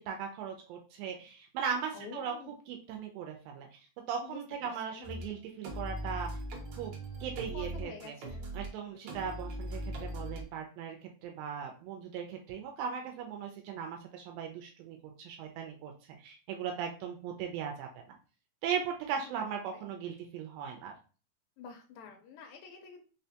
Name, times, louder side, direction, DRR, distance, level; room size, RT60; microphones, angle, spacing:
voice 1, 0.0-2.3 2.7-3.7 4.1-6.3 6.7-6.9 7.2-8.1 8.5-11.0 11.2-15.9 16.2-17.9 18.6-20.9, right 7 dB, 85° right, 2 dB, 2.3 m, -38 dB
voice 2, 1.9-2.5 4.2-5.1 7.5-8.5 8.8-9.2 19.2-19.5 19.7-19.8 21.6-23.1, left 6 dB, 85° left, 3 dB, 2.3 m, -49 dB
sound 1, 5.0-5.3 5.6-8.7 9.1-10.4, right 1 dB, 70° right, 1.9 m, -39 dB
5.7 x 2.2 x 2.7 m, 0.37 s
omnidirectional pair, 4.0 m